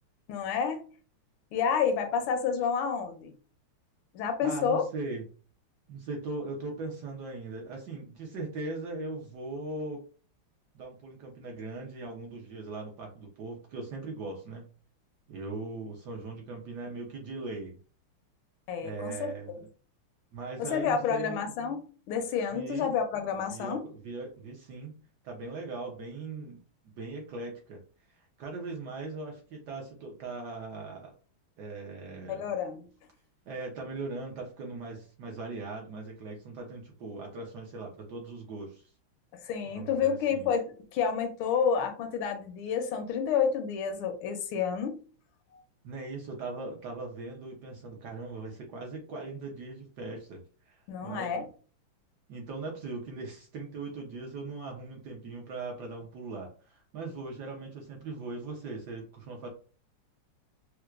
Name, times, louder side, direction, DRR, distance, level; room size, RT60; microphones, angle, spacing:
voice 1, 0.3-0.8 1.5-3.3 4.1-4.8 18.7-19.3 20.6-23.9 32.3-32.9 39.4-40.6 40.9-45.0 50.9-51.5, left 6 dB, 80° left, 6 dB, 1.4 m, -29 dB
voice 2, 4.4-5.2 5.9-10.0 10.7-14.7 15.3-17.8 18.8-19.7 20.3-21.4 22.5-22.9 23.5-26.6 27.0-27.8 28.1-31.1 31.6-32.5 33.5-38.8 39.7-40.5 45.8-51.4 52.3-59.5, right 3 dB, 65° right, 0 dB, 1.1 m, -39 dB
4.4 x 2.1 x 2.4 m, 0.38 s
omnidirectional pair, 2.3 m